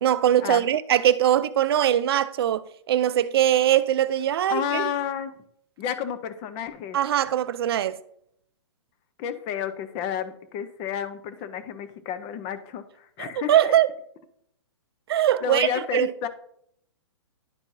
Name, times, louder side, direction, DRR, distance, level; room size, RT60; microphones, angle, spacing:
voice 1, 0.0-4.9 6.9-8.0 13.2-13.9 15.1-16.1, right 11 dB, 55° right, 0.5 m, -22 dB
voice 2, 4.5-5.3 5.8-7.0 9.2-13.8 15.4-16.3, left 8 dB, 30° left, 0.7 m, -31 dB
11.5 x 4.5 x 2.7 m
hypercardioid pair, 140°, 15 cm